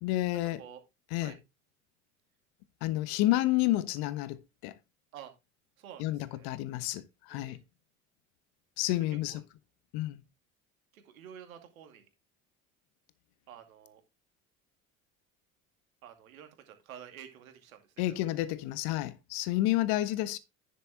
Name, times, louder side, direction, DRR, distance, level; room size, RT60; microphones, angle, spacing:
voice 1, 0.0-0.6 1.1-1.3 2.8-4.8 6.0-7.6 8.8-9.4 9.9-10.2 18.0-20.4, left 16 dB, 60° left, 1.3 m, -30 dB
voice 2, 5.8-6.5 7.3-7.6 9.3-9.4 10.9-12.1 13.5-14.0 16.0-18.2, right 9 dB, 80° right, 2.5 m, -50 dB
10.5 x 7.0 x 3.5 m
hypercardioid pair, 70°, 41 cm